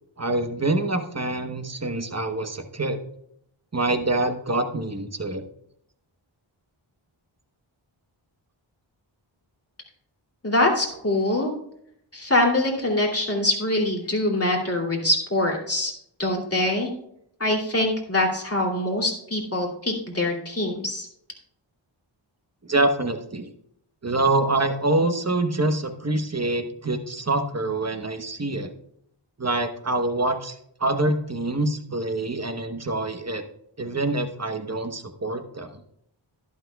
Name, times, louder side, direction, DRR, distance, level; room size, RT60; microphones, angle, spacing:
voice 1, 0.2-3.0 3.7-5.4 22.7-23.5 24.0-28.7 29.4-30.5 30.8-33.4 33.8-35.7, right 2 dB, 30° right, 6 dB, 1.1 m, -25 dB
voice 2, 10.4-11.5 12.1-15.9 16.2-16.9 17.4-21.1, left 1 dB, 30° left, -1 dB, 2.9 m, -24 dB
11.5 x 11.5 x 2.3 m, 0.71 s
wide cardioid pair, 55°, 48 cm